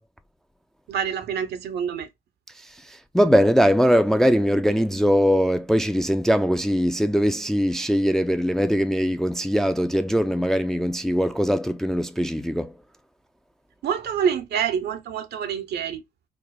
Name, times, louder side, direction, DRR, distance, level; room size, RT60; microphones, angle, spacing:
voice 1, 0.9-2.1 13.8-16.0, right 8 dB, 60° right, 0.7 m, -26 dB
voice 2, 3.1-12.7, equal, ahead, 0.4 m, -21 dB
3.4 x 2.0 x 3.7 m
hypercardioid pair, 50°, 20 cm